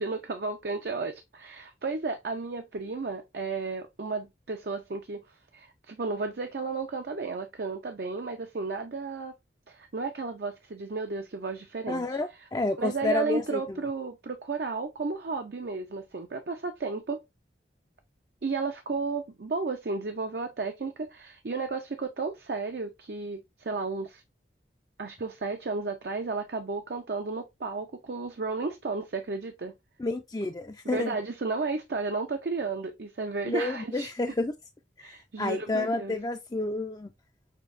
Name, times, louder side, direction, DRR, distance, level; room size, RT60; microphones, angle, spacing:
voice 1, 0.0-9.4 9.7-12.5 12.8-17.2 18.4-24.2 25.0-29.7 30.8-34.1 35.0-36.2, right 4 dB, 65° right, 0.5 m, -33 dB
voice 2, 11.9-13.6 30.0-31.2 33.4-34.5 35.0-35.1 35.4-37.1, left 2 dB, 20° left, 0.4 m, -30 dB
6.7 x 2.7 x 2.5 m
head